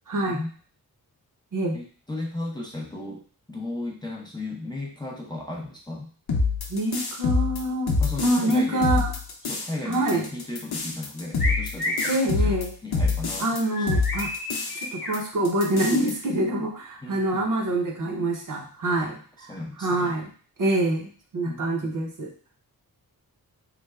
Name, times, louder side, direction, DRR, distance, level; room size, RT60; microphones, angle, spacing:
voice 1, 0.1-0.4 1.5-1.8 6.7-7.9 8.2-9.1 9.8-10.3 12.1-12.7 13.4-14.3 14.7-19.1 19.8-20.3 20.6-22.3, right 1 dB, 55° right, 1 dB, 0.7 m, -25 dB
voice 2, 1.7-3.2 3.5-6.1 8.0-9.1 9.4-12.5 12.8-13.6 13.9-14.1 17.0-17.5 19.0-19.2 19.5-20.2 21.5-21.9, left 2 dB, 10° left, -2 dB, 0.5 m, -35 dB
sound 1, 6.3-8.5 8.8-9.7 9.9-13.6 13.9-14.8 15.1-15.2 15.4-16.1, left 4 dB, 80° left, 0.7 m, -25 dB
sound 2, 11.4-12.2 13.7-15.2, left 1 dB, 30° left, 0.9 m, -30 dB
3.2 x 2.0 x 3.4 m, 0.43 s
wide cardioid pair, 130°, 37 cm